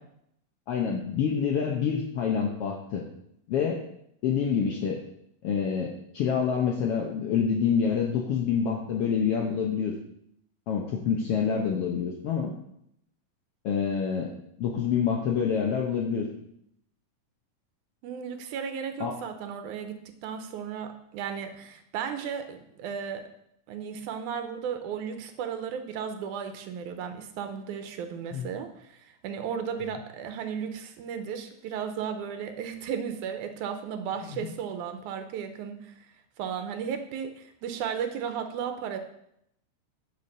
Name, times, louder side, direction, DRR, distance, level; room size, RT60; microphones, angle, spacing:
voice 1, 0.7-3.0 3.5-3.8 4.2-5.0 5.4-9.9 10.7-12.5 13.6-14.3 14.6-16.3 19.0-19.1 28.3-28.5, left 7 dB, 75° left, 0 dB, 1.4 m, -27 dB
voice 2, 18.0-20.0 20.2-23.2 23.7-39.0, right 7 dB, 80° right, 7 dB, 2.2 m, -35 dB
8.5 x 4.6 x 6.5 m, 0.75 s
omnidirectional pair, 3.6 m